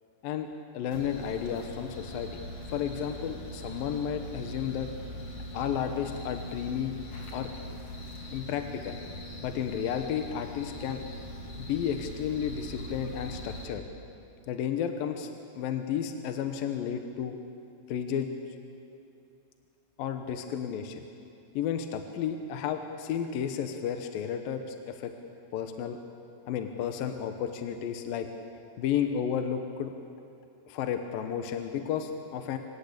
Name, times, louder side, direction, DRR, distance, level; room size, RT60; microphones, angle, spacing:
voice 1, 0.7-2.4 2.7-4.9 5.5-6.9 7.3-7.5 8.3-9.0 9.4-11.0 11.6-13.8 14.5-15.3 15.6-17.4 17.9-18.3 20.0-21.0 21.6-25.1 25.5-26.0 26.5-28.3 28.8-29.9 30.7-32.6, left 8 dB, 70° left, 6 dB, 2.5 m, -32 dB
sound 1, 0.9-13.6, equal, 40° left, 3.1 m, -41 dB
26.5 x 17.0 x 8.6 m, 2.6 s
omnidirectional pair, 4.9 m